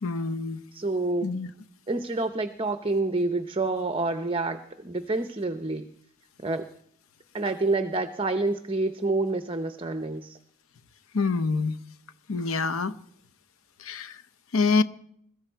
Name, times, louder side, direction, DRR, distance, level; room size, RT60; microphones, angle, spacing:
voice 1, 0.0-0.6 1.2-1.5 11.1-11.8 12.3-13.0 13.8-14.2 14.5-14.8, left 4 dB, 80° left, 0.8 m, -26 dB
voice 2, 0.7-1.3 1.9-5.9 6.4-6.7 7.3-10.4, right 2 dB, 25° right, 0.6 m, -28 dB
21.5 x 14.0 x 4.5 m
head